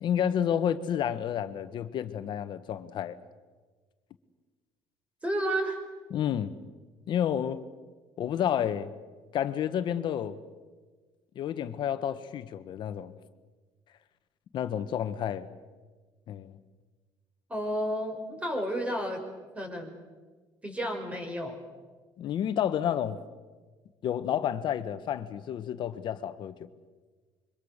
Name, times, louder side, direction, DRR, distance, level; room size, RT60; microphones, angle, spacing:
voice 1, 0.0-3.2 6.1-6.5 7.1-7.6 8.2-8.9 9.3-10.4 11.3-13.1 14.5-15.5 16.3-16.6 22.2-23.2 24.0-26.5, left 9 dB, 55° left, 1.3 m, -30 dB
voice 2, 5.2-5.8 17.5-19.2 19.5-19.9 20.6-21.6, equal, 15° right, 5.3 m, -31 dB
26.0 x 24.0 x 6.7 m
cardioid pair, 125°, 9 cm